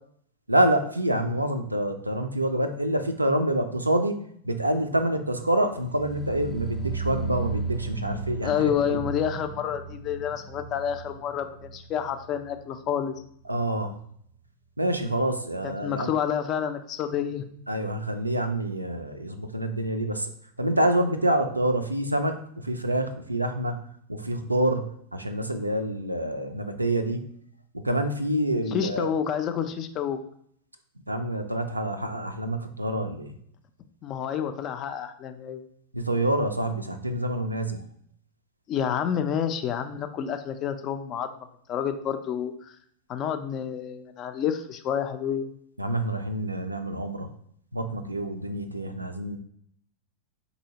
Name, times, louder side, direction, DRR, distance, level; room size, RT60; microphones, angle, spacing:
voice 1, 0.5-9.0 13.5-14.0 14.8-16.1 17.7-20.3 20.6-27.3 27.7-29.1 31.1-33.4 35.9-37.8 45.8-47.3 47.7-49.4, right 1 dB, 85° right, 7 dB, 0.3 m, -27 dB
sound 1, 5.8-12.9 13.1-13.6 13.9-14.0, right 3 dB, 10° right, 0.6 m, -35 dB
voice 2, 8.4-13.1 15.6-17.5 28.7-30.2 34.0-35.6 38.7-42.7 43.1-45.5, left 8 dB, 35° left, 9 dB, 0.3 m, -29 dB
3.9 x 2.7 x 2.8 m, 0.65 s
figure-of-eight pair, 90°, 0 cm